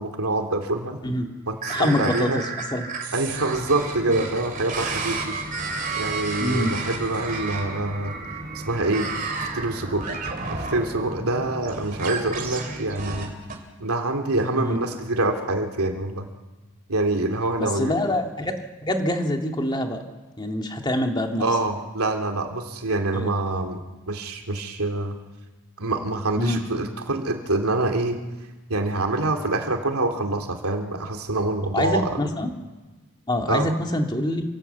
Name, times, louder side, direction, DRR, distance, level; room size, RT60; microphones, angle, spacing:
voice 1, 0.0-1.0 1.5-2.4 3.1-5.3 6.0-8.2 8.7-9.1 9.5-10.0 10.5-13.3 13.8-16.3 16.9-17.9 21.4-25.2 25.8-28.2 28.7-32.2 33.5-33.7, right 2 dB, 85° right, 4 dB, 2.8 m, -25 dB
sound 1, 1.6-13.5, right 4 dB, 40° right, 3.7 m, -32 dB
voice 2, 1.7-2.9 4.1-4.3 6.4-6.7 14.5-14.8 17.6-18.5 18.8-20.0 20.4-21.4 23.1-23.3 26.4-26.6 31.7-32.5 33.3-34.4, left 1 dB, 20° left, 3 dB, 2.1 m, -25 dB
sound 2, 3.3-13.3, equal, 20° right, 2.9 m, -40 dB
27.5 x 17.5 x 8.3 m, 1.2 s
head